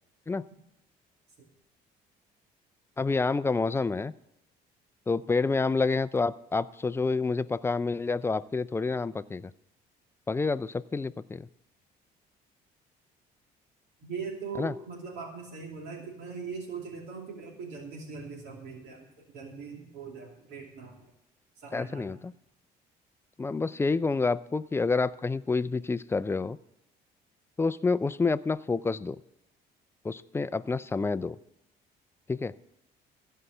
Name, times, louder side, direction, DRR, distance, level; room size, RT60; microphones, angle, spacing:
voice 1, 3.0-4.1 5.1-9.5 10.3-11.5 14.6-14.7 21.7-22.3 23.4-26.6 27.6-29.2 30.0-31.4 32.3-32.5, left 4 dB, 15° left, 15 dB, 0.4 m, -28 dB
voice 2, 14.0-21.1 21.6-22.2, right 5 dB, 75° right, 1 dB, 2.8 m, -40 dB
15.0 x 5.6 x 7.9 m, 0.87 s
cardioid pair, 110°, 17 cm